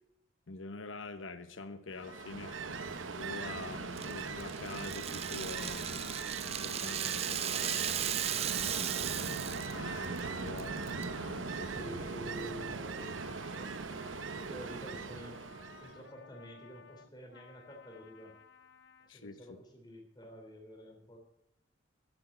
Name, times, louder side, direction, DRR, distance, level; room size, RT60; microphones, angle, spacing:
voice 1, 0.5-2.5 3.2-6.2 6.4-11.9 19.1-19.6, left 3 dB, 90° left, 9 dB, 1.0 m, -46 dB
Ocean, 1.9-16.0, right 4 dB, 80° right, 0.8 m, -40 dB
sound 1, 2.0-19.1, left 5 dB, 65° left, 0.7 m, -55 dB
Rattle (instrument), 4.0-9.8 10.0-10.2 10.6-11.0, right 10 dB, 30° right, 0.4 m, -36 dB
voice 2, 11.7-15.4 15.8-18.4 19.0-21.2, equal, 20° left, 2 dB, 3.3 m, -49 dB
11.0 x 8.2 x 8.4 m, 0.79 s
head